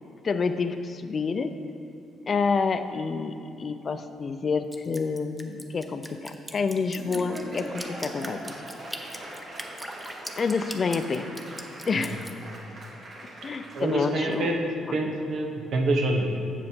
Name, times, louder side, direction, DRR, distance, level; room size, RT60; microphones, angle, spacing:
voice 1, 0.2-1.6 2.3-8.6 10.4-11.3 11.9-12.3 13.4-14.5 14.9-15.1, left 5 dB, 45° left, 10 dB, 0.5 m, -28 dB
Drip, 4.7-12.3, equal, 5° right, 0.8 m, -40 dB
Laughter / Applause, 6.7-14.5, right 1 dB, 50° right, 2.0 m, -41 dB
voice 2, 13.7-14.6 14.9-16.3, right 2 dB, 65° right, 1 dB, 1.2 m, -26 dB
7.6 x 7.0 x 5.1 m, 2.8 s
cardioid pair, 90°, 0 cm